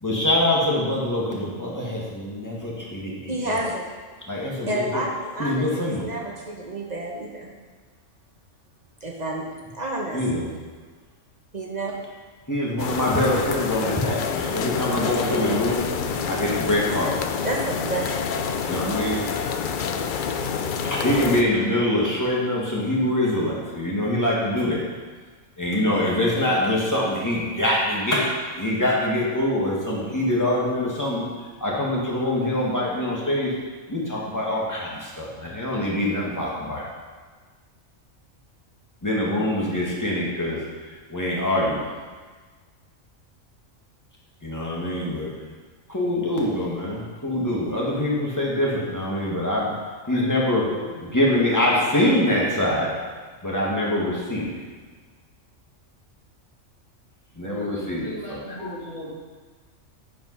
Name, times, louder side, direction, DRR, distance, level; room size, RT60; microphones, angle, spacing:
voice 1, 0.0-3.6 4.3-5.0 5.4-6.1 10.1-10.5 12.5-17.1 18.6-19.2 20.8-24.8 25.6-31.2 31.6-33.5 33.9-36.8 39.0-40.6 41.1-41.9 44.4-45.3 45.9-49.7 50.1-50.7 51.0-52.9 53.4-54.6 57.4-58.4, left 1 dB, 15° left, -5 dB, 1.8 m, -24 dB
voice 2, 3.3-3.8 4.7-7.5 9.0-10.2 11.5-11.9 15.5-15.7 17.4-18.1, right 1 dB, 35° right, -1 dB, 1.1 m, -29 dB
sound 1, 12.8-21.4, left 6 dB, 60° left, 0.5 m, -28 dB
voice 3, 50.1-51.0 51.8-51.9 57.4-59.1, left 1 dB, 35° left, -11 dB, 2.2 m, -37 dB
9.3 x 5.1 x 5.6 m, 1.5 s
omnidirectional pair, 1.4 m